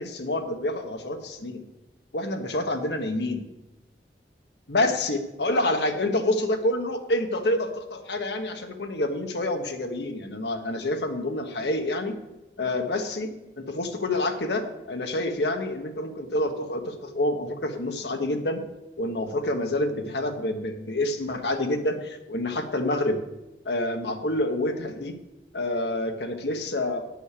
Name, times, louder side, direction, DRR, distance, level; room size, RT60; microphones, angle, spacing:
voice 1, 0.0-1.6 2.1-3.4 4.7-12.2 12.6-18.6 19.0-23.2 23.6-25.2 25.5-27.1, left 1 dB, 80° left, 5 dB, 1.2 m, -28 dB
9.8 x 6.4 x 6.7 m, 0.97 s
head